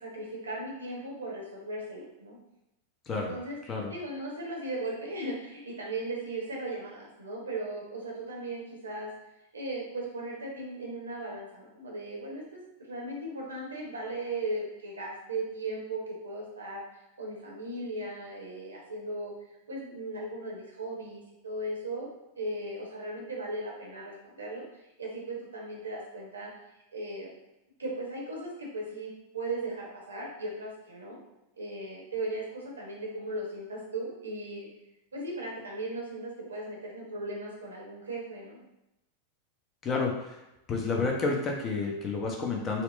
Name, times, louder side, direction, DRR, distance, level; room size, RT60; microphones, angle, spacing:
voice 1, 0.0-2.4 3.1-3.6 3.9-9.1 9.5-12.6 12.9-19.3 19.7-22.1 22.4-26.5 26.9-27.3 27.8-31.2 31.6-34.7 35.1-38.6, right 2 dB, 75° right, -2 dB, 0.9 m, -37 dB
voice 2, 39.8-40.4 40.7-42.8, left 4 dB, 30° left, 0 dB, 0.6 m, -30 dB
4.3 x 2.1 x 2.5 m, 0.92 s
figure-of-eight pair, 90°, 0 cm